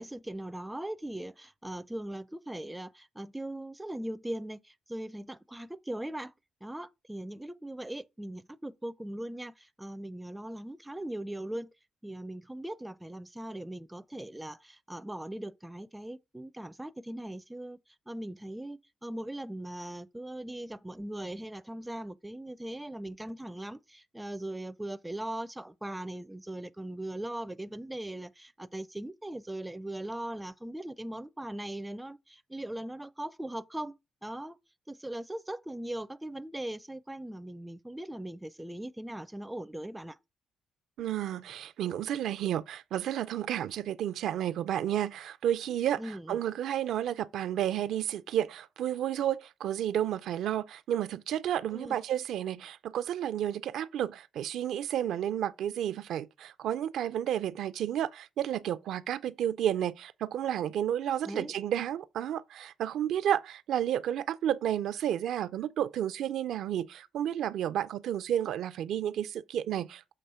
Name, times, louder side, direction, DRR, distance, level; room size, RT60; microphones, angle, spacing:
voice 1, 0.0-6.3 6.6-11.7 12.0-17.8 18.1-34.6 34.9-40.2 46.0-46.4 51.7-52.0 61.2-61.5, right 1 dB, 10° right, 0.4 m, -39 dB
voice 2, 41.0-46.0 46.3-70.1, right 10 dB, 75° right, 0.4 m, -31 dB
6.9 x 2.9 x 5.5 m
cardioid pair, 90°, 0 cm